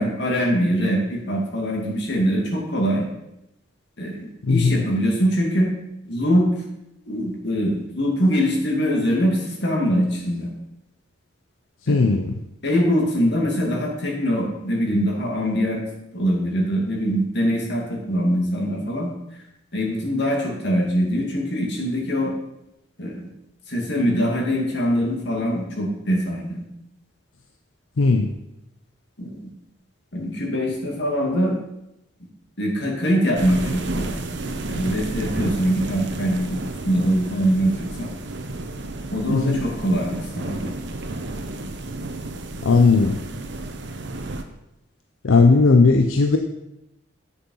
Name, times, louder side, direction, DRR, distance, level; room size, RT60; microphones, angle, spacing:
voice 1, 0.0-3.1 4.0-5.7 6.0-6.5 7.1-10.5 11.9-12.1 12.6-15.8 16.1-19.1 19.7-22.3 23.0-23.2 23.7-26.6 29.2-29.5 30.1-31.6 32.6-34.2 34.7-36.6 36.8-38.1 39.1-40.7, equal, 55° left, -1 dB, 2.4 m, -23 dB
voice 2, 4.4-4.8 11.9-12.3 28.0-28.3 39.3-39.6 42.6-43.2 45.2-46.4, left 4 dB, 80° left, 5 dB, 0.6 m, -17 dB
sound 1, 33.4-44.4, right 2 dB, 55° right, 0.8 m, -31 dB
8.5 x 6.9 x 5.5 m, 0.86 s
head